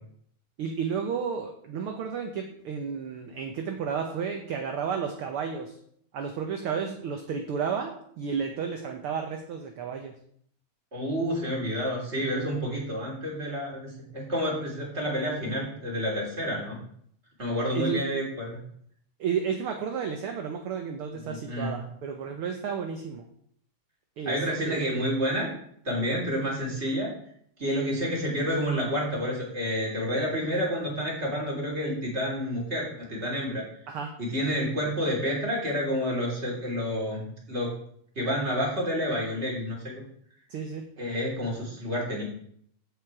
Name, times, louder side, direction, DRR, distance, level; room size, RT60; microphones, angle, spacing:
voice 1, 0.6-5.8 6.1-7.9 8.2-10.1 17.7-18.0 19.2-23.2 24.2-24.4 24.7-25.2 33.9-34.1 40.5-40.8, right 6 dB, 70° right, 4 dB, 1.4 m, -32 dB
voice 2, 10.9-16.8 17.4-18.6 21.2-21.8 24.2-25.5 25.8-27.1 27.6-33.6 34.2-37.2 37.5-37.7 38.1-40.0 41.0-42.2, equal, 20° right, -3 dB, 3.4 m, -29 dB
15.0 x 5.1 x 4.7 m, 0.66 s
omnidirectional pair, 3.3 m